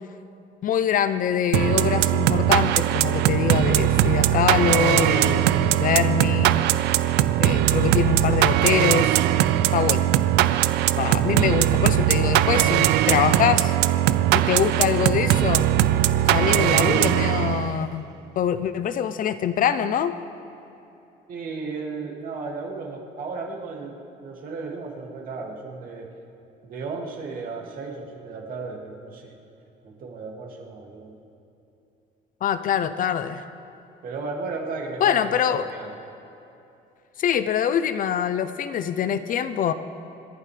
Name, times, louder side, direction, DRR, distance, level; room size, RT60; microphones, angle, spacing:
voice 1, 0.6-6.6 7.4-9.2 9.7-10.1 11.0-13.7 14.3-15.7 16.3-18.0 18.4-20.2 32.4-33.4 35.0-35.7 37.2-39.7, left 8 dB, 55° left, 12 dB, 0.7 m, -24 dB
sound 1, 1.5-17.8, right 13 dB, 90° right, 0.5 m, -20 dB
voice 2, 21.3-26.1 26.6-29.3 29.8-31.2 34.0-36.0, right 4 dB, 55° right, -1 dB, 2.5 m, -35 dB
27.5 x 11.0 x 3.4 m, 2.8 s
cardioid pair, 110°, 17 cm